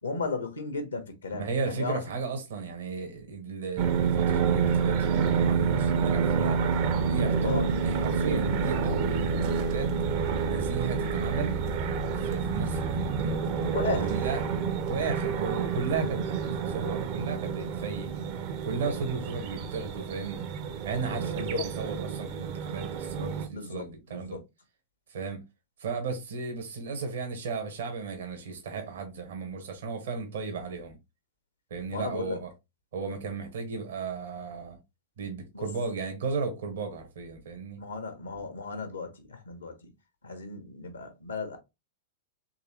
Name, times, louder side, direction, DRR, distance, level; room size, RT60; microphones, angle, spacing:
voice 1, 0.0-2.0 7.4-7.7 13.7-14.2 21.3-21.7 23.5-24.4 31.9-32.4 35.5-35.7 37.8-39.9 40.2-41.6, left 4 dB, 85° left, 1.1 m, -35 dB
voice 2, 1.3-6.6 7.0-9.9 10.5-11.6 12.1-13.4 13.9-14.4 14.9-18.1 18.6-20.4 20.8-24.4 25.1-25.4 25.8-31.0 31.7-32.5 32.9-34.8 35.2-37.8, right 4 dB, 65° right, 1.2 m, -34 dB
sound 1, 3.8-23.5, right 6 dB, 50° right, 0.7 m, -28 dB
3.9 x 3.3 x 3.0 m
figure-of-eight pair, 100°, 0 cm